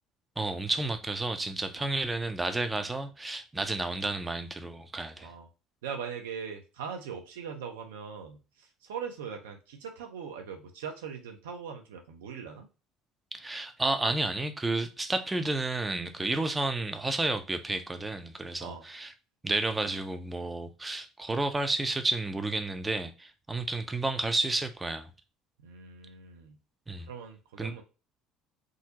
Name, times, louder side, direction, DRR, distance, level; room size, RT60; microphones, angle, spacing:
voice 1, 0.4-5.3 13.3-19.1 19.4-25.1 26.9-27.1 27.6-27.7, right 2 dB, 15° right, 0.5 m, -31 dB
voice 2, 5.8-12.7 16.2-16.4 18.6-18.8 25.6-26.6 27.0-27.8, right 6 dB, 75° right, 0.6 m, -41 dB
3.7 x 2.0 x 2.8 m
figure-of-eight pair, 60°, 0 cm